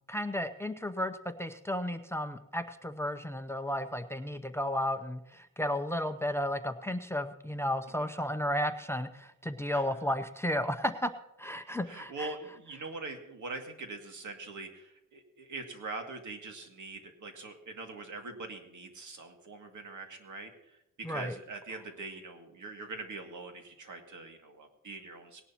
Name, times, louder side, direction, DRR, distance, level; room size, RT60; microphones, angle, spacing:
voice 1, 0.1-11.1 11.4-12.3 21.0-21.3, left 1 dB, 10° left, 10 dB, 0.7 m, -33 dB
voice 2, 11.9-25.5, right 3 dB, 65° right, 4 dB, 2.3 m, -43 dB
19.0 x 11.0 x 2.9 m, 0.87 s
cardioid pair, 105°, 32 cm